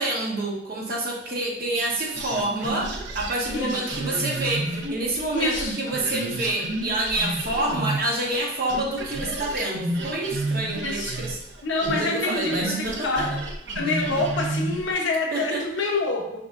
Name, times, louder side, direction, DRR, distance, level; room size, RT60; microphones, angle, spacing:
voice 1, 0.0-11.4 11.8-13.3 15.3-15.6, right 2 dB, 50° right, -2 dB, 0.9 m, -28 dB
sound 1, 2.1-8.4 8.7-14.9, right 2 dB, 70° right, 0.6 m, -31 dB
voice 2, 3.5-3.9 5.3-5.8 10.7-11.2 11.6-13.3 13.7-16.4, left 3 dB, 85° left, 0 dB, 0.8 m, -26 dB
4.1 x 3.7 x 2.5 m, 0.81 s
head